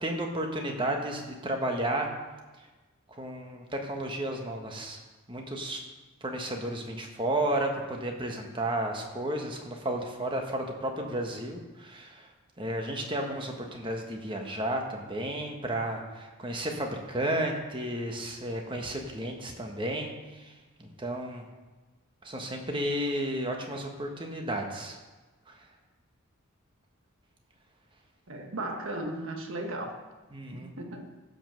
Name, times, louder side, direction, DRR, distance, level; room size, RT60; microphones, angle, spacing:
voice 1, 0.0-2.1 3.1-5.0 5.3-5.8 6.2-12.3 12.6-20.5 20.8-21.4 22.2-25.0 25.5-25.6 30.3-30.7, right 1 dB, 20° right, 2 dB, 1.3 m, -32 dB
voice 2, 28.3-30.0 30.5-31.1, right 1 dB, 65° right, 4 dB, 1.5 m, -36 dB
15.0 x 5.3 x 6.3 m, 1.2 s
head